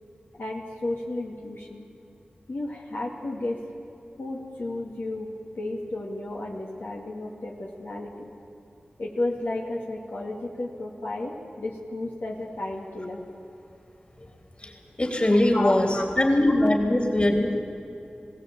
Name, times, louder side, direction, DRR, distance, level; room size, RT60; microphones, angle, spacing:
voice 1, 0.3-1.9 2.5-3.6 4.2-8.3 9.0-13.2 15.5-16.0 16.6-16.7, left 2 dB, 80° left, -2 dB, 2.3 m, -33 dB
voice 2, 14.6-17.6, left 1 dB, 35° left, 3 dB, 3.4 m, -22 dB
19.0 x 17.0 x 8.9 m, 2.8 s
cardioid pair, 50°, 3 cm